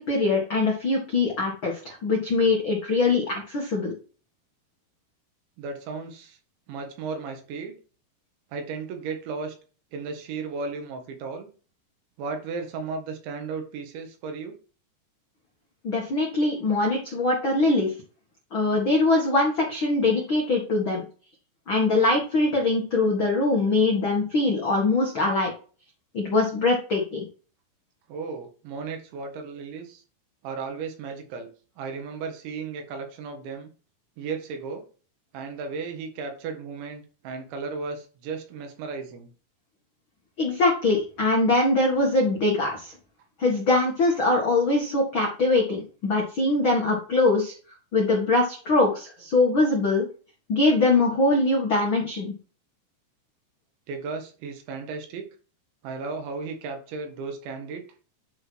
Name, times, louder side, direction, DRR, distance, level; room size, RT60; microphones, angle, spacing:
voice 1, 0.0-3.9 15.8-17.9 18.5-21.0 21.7-25.5 26.1-27.2 40.4-42.9 43.4-47.5 47.9-50.0 50.5-52.3, left 2 dB, 80° left, 0 dB, 1.1 m, -22 dB
voice 2, 5.6-6.4 6.7-7.8 8.5-9.6 9.9-11.5 12.2-14.6 28.1-30.0 30.4-31.5 31.8-33.7 34.2-34.8 35.3-39.3 53.9-55.2 55.8-57.8, right 4 dB, 85° right, 5 dB, 4.0 m, -35 dB
10.5 x 4.2 x 4.6 m, 0.38 s
omnidirectional pair, 5.2 m